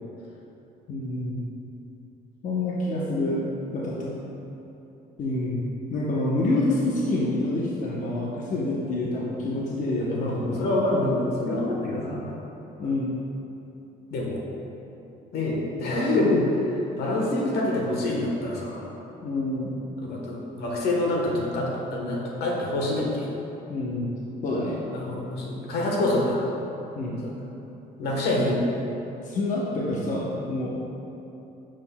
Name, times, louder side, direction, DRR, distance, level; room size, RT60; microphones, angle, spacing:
voice 1, 0.9-1.4 2.4-4.1 5.2-5.6 5.9-10.7 11.9-12.3 12.8-13.2 19.2-19.8 23.7-24.1 24.4-24.8 27.0-27.2 29.2-30.8, left 2 dB, 50° left, -5 dB, 0.9 m, -27 dB
voice 2, 10.1-12.2 14.1-14.4 15.3-16.5 17.0-18.9 20.0-23.3 24.9-26.4 28.0-28.6, left 1 dB, 75° left, -2 dB, 1.2 m, -26 dB
7.7 x 6.2 x 2.2 m, 3.0 s
cardioid pair, 110°, 17 cm